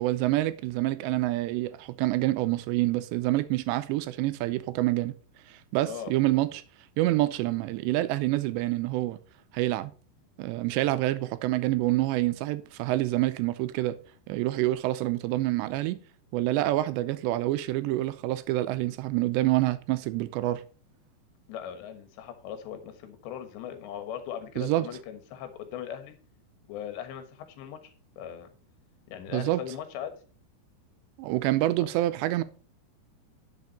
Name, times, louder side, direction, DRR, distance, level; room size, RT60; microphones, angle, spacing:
voice 1, 0.0-5.1 5.5-6.6 7.0-9.2 9.5-9.9 10.4-14.0 14.3-16.0 16.3-20.6 24.6-24.9 29.3-29.6 31.2-32.4, right 16 dB, 85° right, 2.9 m, -27 dB
voice 2, 21.5-26.2 26.7-28.5 29.1-30.1 31.8-31.9, left 9 dB, 80° left, 3.6 m, -39 dB
11.0 x 7.0 x 4.2 m
omnidirectional pair, 5.1 m